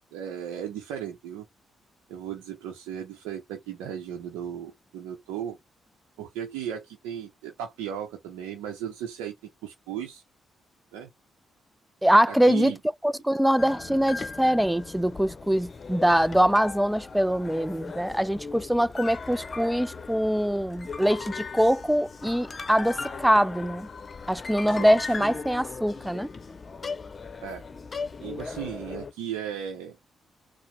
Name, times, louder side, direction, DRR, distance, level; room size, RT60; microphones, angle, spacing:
voice 1, 0.1-1.5 2.1-5.6 6.2-9.4 9.6-10.2 10.9-11.1 12.3-12.8 24.7-25.4 27.4-27.6 28.2-30.0, right 9 dB, 75° right, 0.7 m, -36 dB
voice 2, 12.0-12.7 13.0-23.9 24.3-26.3, equal, 5° right, 0.3 m, -23 dB
sound 1, 13.6-29.1, left 4 dB, 40° left, 0.7 m, -38 dB
4.5 x 2.1 x 3.2 m
hypercardioid pair, 40°, 0 cm